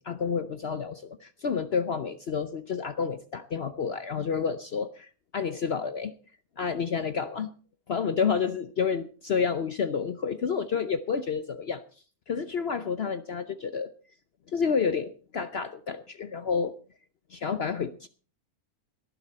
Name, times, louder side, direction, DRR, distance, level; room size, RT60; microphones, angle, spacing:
voice 1, 0.0-6.1 6.6-7.5 7.9-11.8 12.3-13.9 14.5-16.7 17.3-18.1, left 6 dB, 50° left, 11 dB, 0.9 m, -29 dB
18.5 x 11.0 x 4.2 m, 0.39 s
omnidirectional pair, 1.6 m